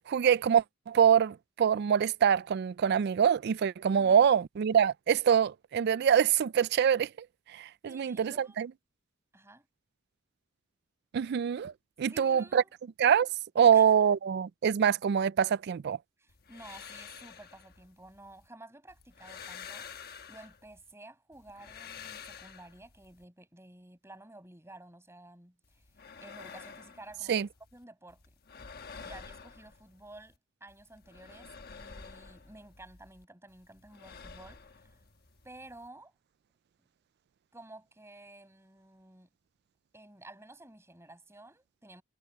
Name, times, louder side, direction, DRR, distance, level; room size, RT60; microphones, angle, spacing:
voice 1, 0.1-7.3 7.5-8.7 11.1-11.7 12.0-12.6 13.0-13.3 13.6-16.0 27.3-27.5, right 8 dB, 55° right, 0.3 m, -25 dB
voice 2, 7.8-8.6 9.3-9.7 12.1-12.7 13.7-14.0 16.2-19.9 20.3-25.9 26.2-28.3 28.9-30.3 30.6-35.0 35.4-36.1 37.5-39.3 39.9-42.0, right 2 dB, 15° right, 6.3 m, -52 dB
sound 1, 16.3-18.5 18.9-20.9 21.3-23.2 25.6-27.8 28.1-30.4 30.7-33.2 33.5-35.9, left 6 dB, 50° left, 1.2 m, -49 dB
head